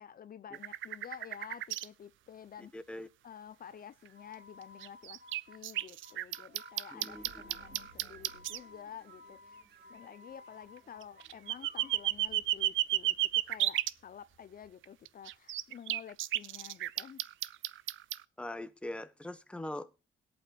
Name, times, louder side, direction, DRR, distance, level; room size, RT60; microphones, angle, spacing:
voice 1, 0.0-2.7 3.2-5.2 5.5-9.6 9.9-17.2, left 8 dB, 45° left, 0.7 m, -50 dB
sound 1, 0.5-1.9 4.1-4.2 4.8-8.6 11.0-13.9 14.8-18.2, right 14 dB, 75° right, 0.6 m, -33 dB
voice 2, 2.7-3.1 6.9-7.4 18.4-19.9, left 1 dB, 5° left, 1.2 m, -42 dB
sound 2, 4.0-12.2, left 2 dB, 50° right, 6.6 m, -56 dB
sound 3, 7.0-15.7, right 3 dB, 35° right, 2.7 m, -64 dB
22.0 x 8.6 x 2.4 m
cardioid pair, 90°, 20 cm